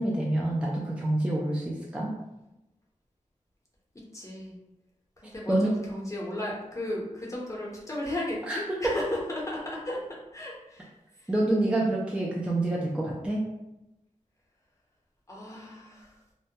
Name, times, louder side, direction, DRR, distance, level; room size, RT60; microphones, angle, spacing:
voice 1, 0.0-2.1 5.5-5.7 8.4-8.6 11.3-13.4, right 1 dB, 10° right, -3 dB, 0.4 m, -27 dB
voice 2, 4.1-4.6 5.2-10.0 10.3-11.3 15.3-16.2, left 1 dB, 25° left, -4 dB, 0.7 m, -35 dB
2.2 x 2.1 x 2.7 m, 0.93 s
wide cardioid pair, 65°, 13 cm